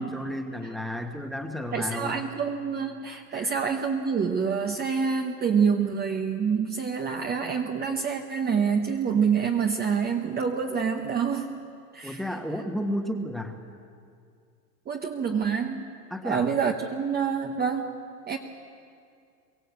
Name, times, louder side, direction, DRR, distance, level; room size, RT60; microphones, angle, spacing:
voice 1, 0.0-2.2 3.3-3.5 12.0-13.6 16.1-16.5, equal, ahead, 5 dB, 1.4 m, -32 dB
voice 2, 1.7-11.6 11.9-12.2 14.9-15.9 16.2-17.9 18.3-18.4, right 6 dB, 20° right, 3 dB, 1.0 m, -27 dB
23.0 x 15.5 x 8.2 m, 2.3 s
hypercardioid pair, 125°, 49 cm